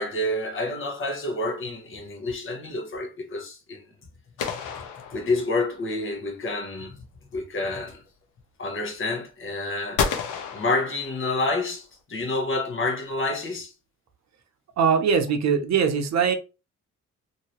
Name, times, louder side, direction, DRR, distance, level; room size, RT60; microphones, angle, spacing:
voice 1, 0.0-3.8 5.1-7.0 7.3-8.0 8.6-10.1 10.5-13.7, left 2 dB, 45° left, 1.0 m, -28 dB
sound 1, 4.4-5.8 10.0-11.6, left 6 dB, 85° left, 0.8 m, -31 dB
voice 2, 14.8-16.3, right 6 dB, 60° right, 0.7 m, -21 dB
2.8 x 2.7 x 2.9 m
cardioid pair, 90°, 30 cm